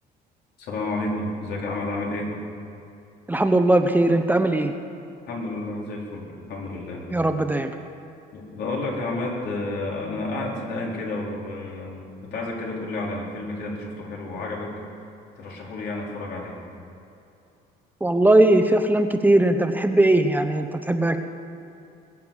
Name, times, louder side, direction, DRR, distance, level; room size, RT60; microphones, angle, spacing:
voice 1, 0.6-2.3 5.3-7.1 8.3-14.8 15.4-16.5, left 2 dB, 75° left, -2 dB, 4.2 m, -31 dB
voice 2, 3.3-4.7 7.1-7.7 18.0-21.2, right 1 dB, 10° right, 7 dB, 0.8 m, -19 dB
21.0 x 7.9 x 7.2 m, 2.7 s
cardioid pair, 110°, 17 cm